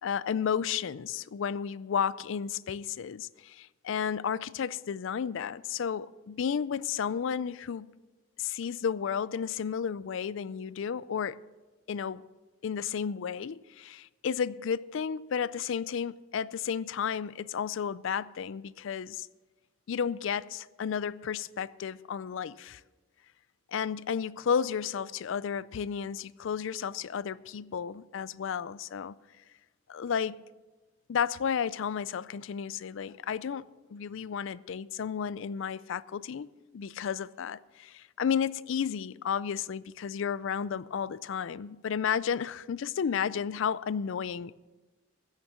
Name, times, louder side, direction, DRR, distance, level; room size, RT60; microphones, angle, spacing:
voice 1, 0.0-7.9 8.4-11.4 11.9-12.2 12.6-19.3 19.9-22.8 23.7-29.1 29.9-30.4 31.1-36.5 36.7-44.6, left 7 dB, 65° left, 0.4 m, -32 dB
15.5 x 6.5 x 7.2 m
head